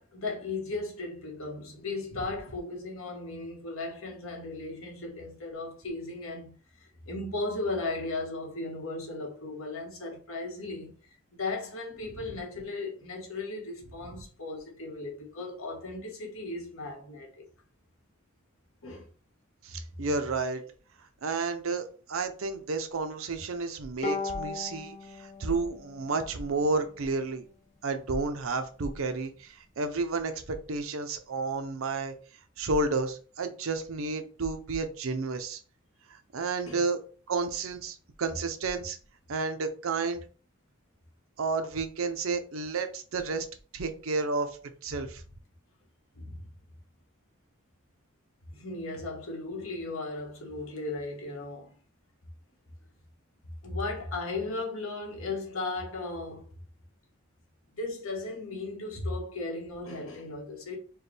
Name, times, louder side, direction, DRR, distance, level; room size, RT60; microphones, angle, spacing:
voice 1, 0.0-11.0 11.3-17.4 18.8-19.0 36.6-36.8 46.1-46.5 48.5-51.8 53.6-56.4 57.7-60.8, left 2 dB, 80° left, 1.2 m, -36 dB
voice 2, 19.6-20.6 21.2-27.5 27.8-32.1 32.6-35.6 36.1-37.0 37.3-39.0 39.3-40.2 41.4-43.5 43.7-44.6 44.8-45.2, right 3 dB, 75° right, 0.6 m, -31 dB
Bowed string instrument, 24.0-27.4, left 3 dB, 35° left, 0.8 m, -38 dB
4.5 x 2.2 x 3.3 m
head